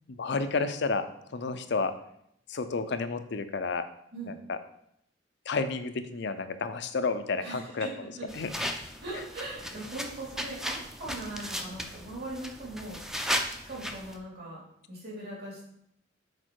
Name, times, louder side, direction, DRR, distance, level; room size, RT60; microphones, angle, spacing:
voice 1, 0.1-1.0 1.3-1.9 2.5-3.8 4.3-4.6 5.5-7.9 8.3-8.5, left 4 dB, 65° left, 10 dB, 0.6 m, -31 dB
voice 2, 7.4-8.3 9.0-13.0 13.7-14.6 14.9-15.7, right 2 dB, 60° right, -5 dB, 2.9 m, -40 dB
sound 1, 8.3-14.2, equal, 5° right, 0.5 m, -36 dB
6.6 x 4.6 x 4.6 m, 0.73 s
head